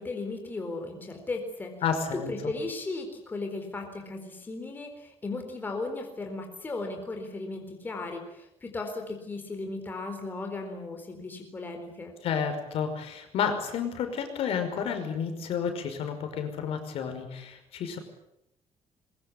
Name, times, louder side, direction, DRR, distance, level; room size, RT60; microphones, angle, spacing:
voice 1, 0.0-1.8 2.1-12.1, left 3 dB, 15° left, 3 dB, 4.2 m, -36 dB
voice 2, 1.8-2.3 12.2-18.0, left 7 dB, 65° left, 7 dB, 5.4 m, -31 dB
23.0 x 22.0 x 9.7 m, 0.81 s
cardioid pair, 175°, 11 cm